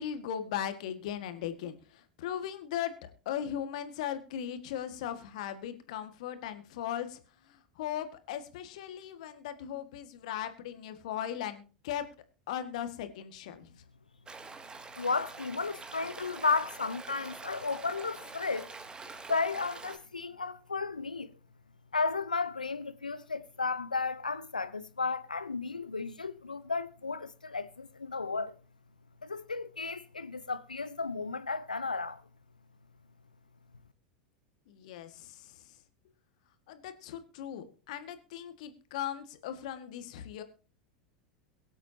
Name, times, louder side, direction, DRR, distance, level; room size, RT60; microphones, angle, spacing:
voice 1, 0.0-7.2 7.5-12.1 12.5-13.7 34.7-35.6 36.7-40.4, left 10 dB, 60° left, 1.9 m, -38 dB
Stream, 14.3-20.0, right 4 dB, 20° right, 2.3 m, -46 dB
voice 2, 15.0-18.7 19.3-21.3 21.9-28.6 29.2-32.2, left 4 dB, 85° left, 0.9 m, -33 dB
23.0 x 8.0 x 2.9 m
figure-of-eight pair, 85°, 4 cm